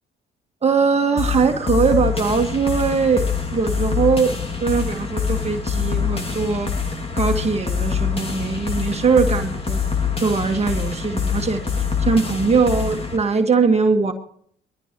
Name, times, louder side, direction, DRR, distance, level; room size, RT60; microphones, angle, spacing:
voice 1, 0.6-4.3 4.6-9.8 10.2-14.1, right 5 dB, 30° right, 3 dB, 1.8 m, -21 dB
sound 1, 1.2-13.2, left 6 dB, 30° left, 2.4 m, -25 dB
23.0 x 13.5 x 3.1 m, 0.63 s
cardioid pair, 90°, 20 cm